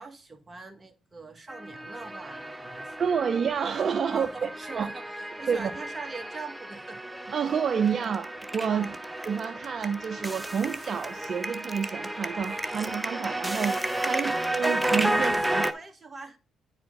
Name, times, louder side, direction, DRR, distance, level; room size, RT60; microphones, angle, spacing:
voice 1, 0.0-2.9 3.3-3.6 4.1-7.0 8.7-9.0 14.2-14.4 15.2-16.4, right 3 dB, 25° right, 1.7 m, -42 dB
sound 1, 1.5-15.7, right 1 dB, 10° right, 0.8 m, -32 dB
voice 2, 3.0-4.5 4.8-4.9 5.5-5.7 7.3-8.9 9.3-15.6, right 7 dB, 50° right, 0.6 m, -29 dB
9.7 x 4.3 x 3.8 m
supercardioid pair, 65°, 0 cm